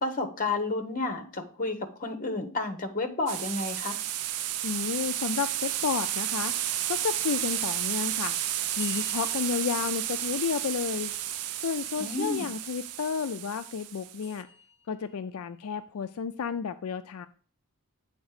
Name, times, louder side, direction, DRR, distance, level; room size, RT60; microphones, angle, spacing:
voice 1, 0.0-4.0 12.0-12.5, left 3 dB, 40° left, 6 dB, 1.0 m, -31 dB
sound 1, 3.3-14.4, right 12 dB, 90° right, 0.5 m, -32 dB
voice 2, 4.6-6.5 6.9-8.4 8.8-11.1 11.6-14.5 14.9-17.3, left 6 dB, 75° left, 9 dB, 0.4 m, -31 dB
sound 2, 8.8-10.8 14.2-15.3, left 4 dB, 10° right, 1.8 m, -48 dB
8.3 x 4.0 x 4.8 m, 0.42 s
head